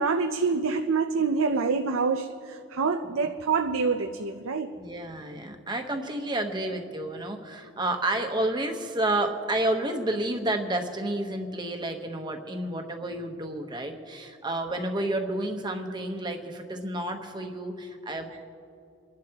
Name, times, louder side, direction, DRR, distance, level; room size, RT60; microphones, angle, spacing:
voice 1, 0.0-4.7, right 4 dB, 90° right, 5 dB, 0.6 m, -26 dB
voice 2, 4.8-18.4, right 1 dB, 20° right, 3 dB, 1.1 m, -30 dB
29.0 x 11.5 x 2.9 m, 2.5 s
head